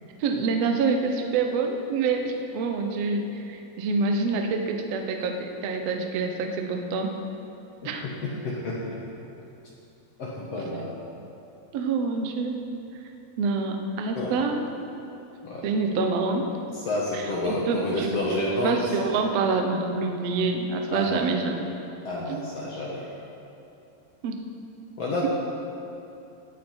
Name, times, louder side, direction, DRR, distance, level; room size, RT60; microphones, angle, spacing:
voice 1, 0.2-7.1 7.8-8.1 11.7-12.6 13.4-14.6 15.6-16.4 17.1-18.1 18.6-21.7 22.3-22.4 24.2-24.4, right 4 dB, 80° right, 4 dB, 1.4 m, -26 dB
voice 2, 8.0-9.0 10.2-10.9 14.1-14.3 15.4-15.6 16.7-19.0 20.9-21.2 22.0-23.1 25.0-25.3, left 1 dB, 60° left, -4 dB, 1.8 m, -29 dB
18.5 x 8.6 x 4.5 m, 2.8 s
omnidirectional pair, 4.4 m